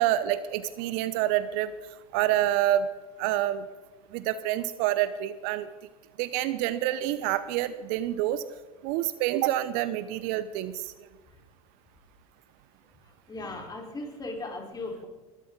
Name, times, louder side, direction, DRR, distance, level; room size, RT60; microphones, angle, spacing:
voice 1, 0.0-1.7 2.1-2.9 3.2-3.6 4.1-5.7 6.2-8.4 8.8-10.7, right 13 dB, 55° right, 15 dB, 0.8 m, -27 dB
voice 2, 13.3-15.1, left 2 dB, 20° left, 1 dB, 4.4 m, -37 dB
21.5 x 13.0 x 4.0 m, 1.3 s
hypercardioid pair, 85°, 19 cm